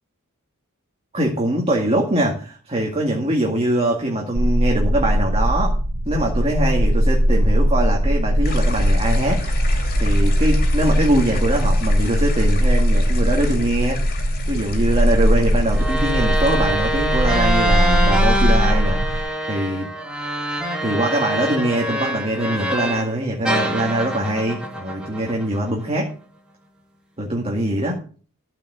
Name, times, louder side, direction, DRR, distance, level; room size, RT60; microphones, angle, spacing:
voice 1, 1.1-5.8 6.1-14.0 14.5-19.9 20.8-26.1 27.2-28.0, right 1 dB, 30° right, 0 dB, 2.1 m, -23 dB
sound 1, 4.3-19.2, equal, 85° right, 1.6 m, -19 dB
sound 2, 8.4-17.9, left 3 dB, 45° left, 2.7 m, -33 dB
sound 3, 15.7-23.1 23.4-25.8, right 1 dB, 5° right, 2.7 m, -25 dB
14.0 x 5.2 x 8.0 m, 0.41 s
head